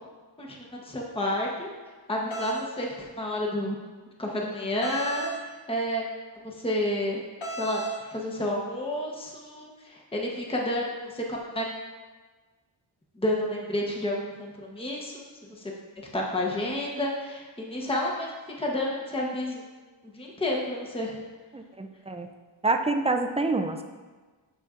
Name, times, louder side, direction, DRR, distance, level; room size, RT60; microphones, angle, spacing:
voice 1, 0.4-1.7 2.1-3.8 4.2-5.3 5.7-6.0 6.4-7.2 7.6-7.8 8.1-11.7 13.2-15.7 16.1-18.3 18.6-19.6 20.1-21.1, left 1 dB, 10° left, -2 dB, 0.9 m, -30 dB
sound 1, 2.3-2.6 4.8-5.4 7.4-8.0, right 2 dB, 80° left, 1.0 m, -33 dB
voice 2, 21.5-22.3 22.6-23.8, right 3 dB, 15° right, 5 dB, 0.4 m, -27 dB
11.5 x 4.1 x 2.5 m, 1.3 s
wide cardioid pair, 80°, 47 cm